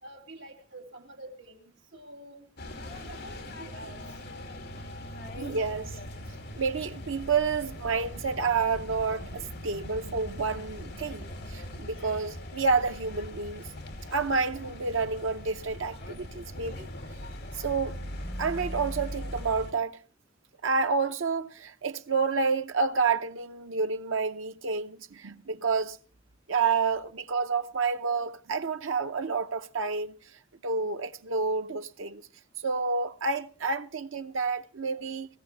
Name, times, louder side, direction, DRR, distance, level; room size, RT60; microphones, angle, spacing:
voice 1, 0.0-2.5 3.0-4.2, right 1 dB, 65° right, 2.6 m, -47 dB
sound 1, 2.6-19.7, left 1 dB, 60° left, 2.5 m, -40 dB
voice 2, 5.4-5.9 6.6-13.6 14.1-16.9 17.6-18.0 18.4-20.0 20.6-26.0 26.5-30.2 30.6-32.2 32.6-35.3, right 4 dB, 85° right, 0.8 m, -29 dB
18.5 x 15.5 x 3.3 m
head